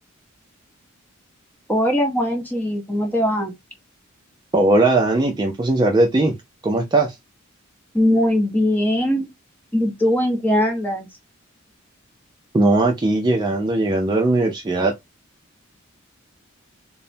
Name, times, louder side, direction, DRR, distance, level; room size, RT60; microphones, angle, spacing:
voice 1, 1.7-3.5 7.9-9.3 9.7-11.1, left 1 dB, 10° left, 0.7 m, -20 dB
voice 2, 4.5-6.3 6.6-7.2 12.5-14.9, right 2 dB, 20° right, 0.4 m, -19 dB
3.0 x 2.0 x 2.6 m
head